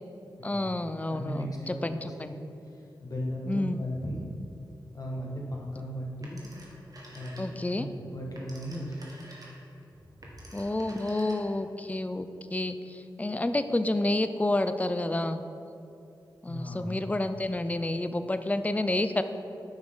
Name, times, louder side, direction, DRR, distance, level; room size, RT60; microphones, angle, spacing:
voice 1, 0.4-2.4 3.5-3.8 7.4-7.9 10.5-15.4 16.4-19.2, left 2 dB, 20° left, 10 dB, 0.5 m, -29 dB
voice 2, 1.1-4.3 4.9-6.4 7.1-9.2 10.1-10.3 16.5-16.9, equal, 45° left, -2 dB, 1.7 m, -37 dB
Telephone, 6.2-7.8 8.1-11.7, right 1 dB, 45° right, 1.6 m, -50 dB
8.7 x 6.1 x 3.8 m, 2.7 s
cardioid pair, 40°, 8 cm